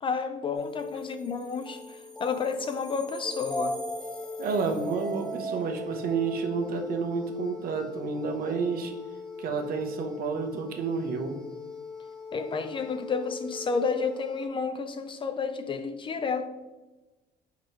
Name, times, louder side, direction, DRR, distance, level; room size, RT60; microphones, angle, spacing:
voice 1, 0.0-3.8 12.3-16.5, left 5 dB, 30° left, 0.4 m, -31 dB
sound 1, 0.5-14.4, left 1 dB, 5° left, 1.0 m, -39 dB
voice 2, 4.4-8.9 9.4-11.4, right 4 dB, 60° right, 0.8 m, -30 dB
4.4 x 3.8 x 3.1 m
cardioid pair, 110°, 17 cm